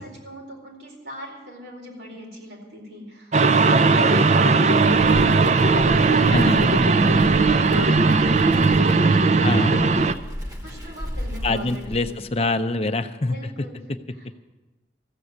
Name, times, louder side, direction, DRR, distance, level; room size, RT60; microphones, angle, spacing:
voice 1, 0.0-10.2 10.6-12.2 13.2-13.8 14.1-14.5, equal, 90° right, -1 dB, 4.3 m, -39 dB
sound 1, 3.3-10.1, right 3 dB, 40° right, 0.5 m, -17 dB
Wind, 4.7-12.5, equal, 20° right, 1.1 m, -35 dB
voice 2, 6.3-6.7 9.4-9.9 11.4-13.4, left 2 dB, 35° left, 9 dB, 0.6 m, -24 dB
14.5 x 7.6 x 9.5 m, 1.1 s
head